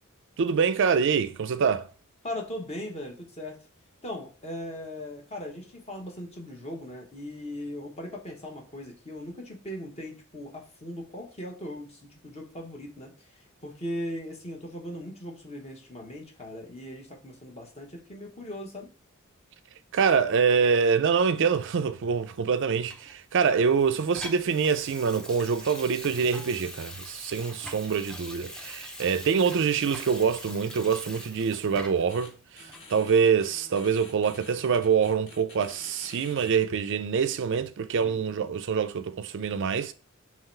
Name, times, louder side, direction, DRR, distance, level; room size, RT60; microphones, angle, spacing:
voice 1, 0.4-1.8 19.9-32.3 32.9-39.9, right 6 dB, 55° right, 0.4 m, -25 dB
voice 2, 2.2-3.6 4.0-18.9 38.0-38.3, left 1 dB, 30° left, 1.0 m, -39 dB
Water tap faucet / Sink (filling or washing), 22.9-32.2 32.7-32.8, equal, 5° left, 0.5 m, -43 dB
sound 1, 32.1-32.3 32.6-36.6, left 2 dB, 65° left, 2.1 m, -48 dB
3.8 x 3.0 x 4.4 m
head